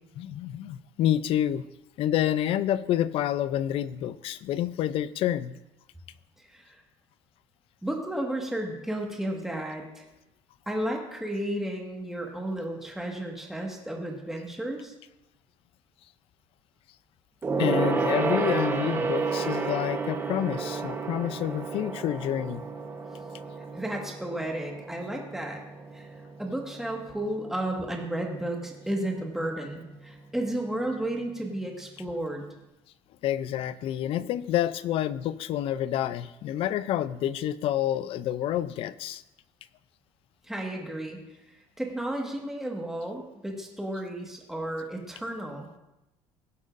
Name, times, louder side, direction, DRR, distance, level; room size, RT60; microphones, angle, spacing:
voice 1, 0.2-1.6 2.0-5.6 17.6-22.6 33.2-39.2, left 11 dB, 55° left, 16 dB, 0.4 m, -28 dB
voice 2, 6.4-6.8 7.8-10.0 10.6-14.9 23.7-25.6 25.9-26.1 26.4-32.4 40.4-41.2 41.8-45.7, right 1 dB, 5° right, 0 dB, 1.6 m, -33 dB
Gong, 17.4-27.2 27.5-27.8 28.1-28.2, right 4 dB, 20° right, 1.1 m, -31 dB
17.5 x 7.8 x 2.6 m, 0.94 s
cardioid pair, 145°, 12 cm